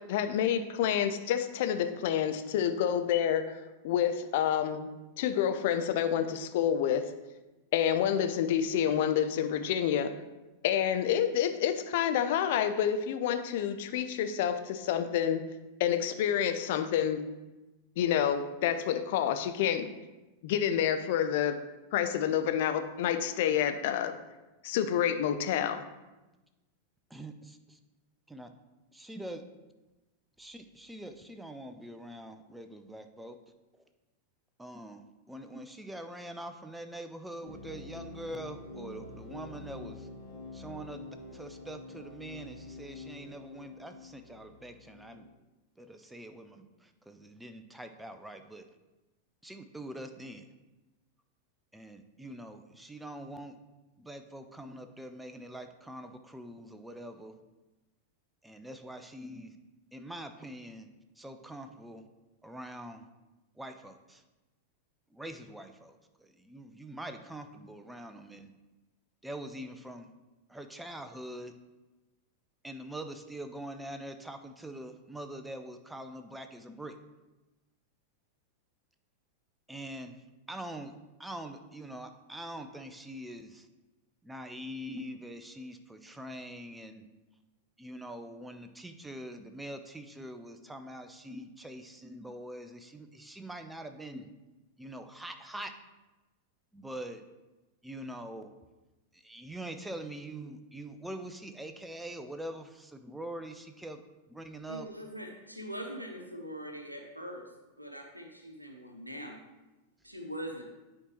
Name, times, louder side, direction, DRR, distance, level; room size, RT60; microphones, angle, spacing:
voice 1, 0.0-4.9 5.2-7.1 7.7-10.1 10.6-15.4 15.8-17.2 18.0-19.9 20.4-21.6 21.9-24.1 24.6-25.8, left 9 dB, 50° left, 8 dB, 0.5 m, -28 dB
voice 2, 27.1-27.8 28.3-28.5 28.9-29.4 30.4-33.4 34.6-40.1 40.5-41.0 41.3-45.2 45.8-48.6 49.4-50.5 51.7-53.6 54.0-57.3 58.4-59.5 59.9-60.9 61.2-62.0 62.4-63.0 63.6-64.2 65.1-66.0 66.4-68.5 69.2-70.1 70.5-71.5 72.6-76.9 79.7-80.2 80.5-80.9 81.2-83.7 84.2-87.1 87.8-94.3 94.8-95.7 96.7-97.2 97.8-98.5 99.2-104.0 104.3-104.9, right 1 dB, 5° right, 7 dB, 0.5 m, -44 dB
sound 1, 37.4-45.3, left 2 dB, 30° left, 2.2 m, -47 dB
voice 3, 104.7-107.5 107.8-109.4 110.0-110.6, equal, 90° right, 2 dB, 0.8 m, -42 dB
9.7 x 4.4 x 3.1 m, 1.1 s
figure-of-eight pair, 90°, 0 cm